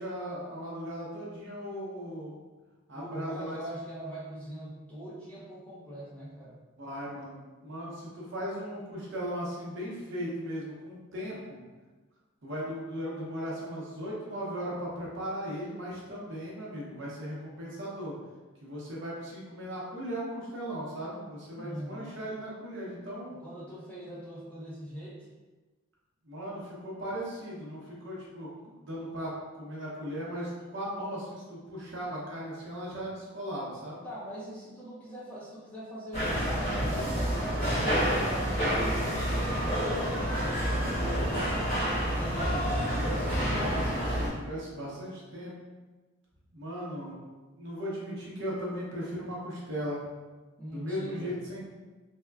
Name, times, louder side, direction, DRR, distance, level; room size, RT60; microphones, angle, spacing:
voice 1, 0.0-2.4 2.9-3.6 6.8-11.6 12.4-18.2 18.6-23.4 26.2-28.5 28.8-29.3 29.6-34.0 42.2-45.5 46.5-47.2 47.6-50.0 50.7-51.7, equal, 60° right, -5 dB, 0.7 m, -37 dB
voice 2, 2.9-6.6 21.6-22.1 23.4-25.3 34.0-41.0 50.6-51.4, equal, 5° left, -8 dB, 0.5 m, -42 dB
sound 1, 36.1-44.3, equal, 30° left, 1.4 m, -28 dB
3.4 x 2.1 x 2.2 m, 1.2 s
head